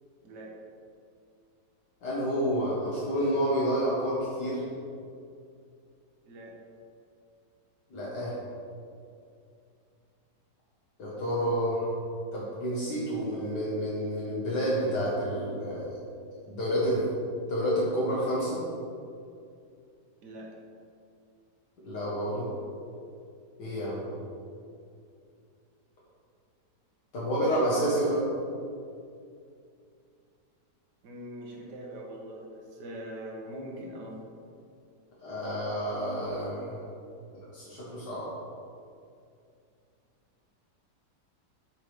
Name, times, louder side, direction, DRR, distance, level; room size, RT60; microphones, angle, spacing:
voice 1, 0.2-0.6 6.3-6.6 20.2-20.5 31.0-34.2, right 1 dB, 70° right, -2 dB, 1.9 m, -42 dB
voice 2, 2.0-4.6 7.9-8.4 11.0-11.9 12.3-15.9 16.5-17.1 17.5-18.6 21.9-22.5 23.6-24.0 27.1-28.3 35.2-36.8 37.3-38.3, equal, 75° left, -7 dB, 2.1 m, -29 dB
7.6 x 5.1 x 5.0 m, 2.4 s
omnidirectional pair, 1.9 m